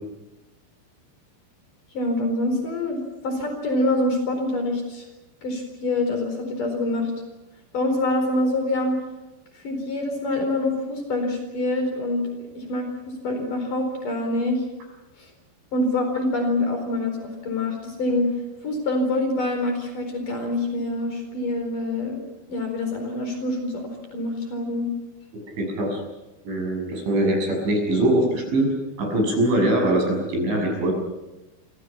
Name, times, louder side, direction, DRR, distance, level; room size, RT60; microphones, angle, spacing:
voice 1, 1.9-3.0 3.2-5.1 5.4-7.1 7.7-9.0 9.6-12.2 12.6-12.8 13.2-14.6 15.2-15.3 15.7-18.3 18.6-22.2 22.5-24.9, left 2 dB, 45° left, 5 dB, 5.7 m, -25 dB
voice 2, 25.6-26.0 26.5-28.7 29.0-30.9, right 1 dB, 80° right, 3 dB, 9.1 m, -22 dB
28.5 x 25.0 x 5.9 m, 1.0 s
omnidirectional pair, 5.3 m